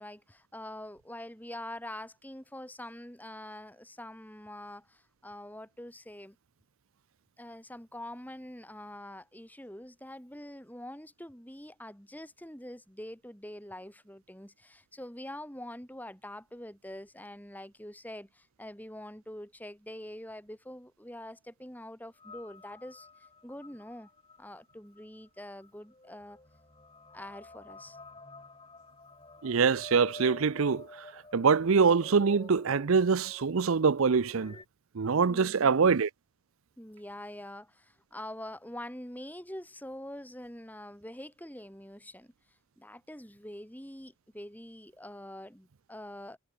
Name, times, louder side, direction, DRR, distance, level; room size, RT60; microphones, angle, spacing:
voice 1, 0.0-6.4 7.4-24.1 24.4-26.4 27.1-28.0 35.3-35.8 36.8-42.3 42.8-46.4, left 1 dB, 10° left, 4.0 m, -45 dB
sound 1, 22.2-34.6, left 2 dB, 25° left, 5.6 m, -51 dB
voice 2, 29.4-31.1 31.3-34.5 34.9-36.1, right 5 dB, 70° right, 0.6 m, -24 dB
head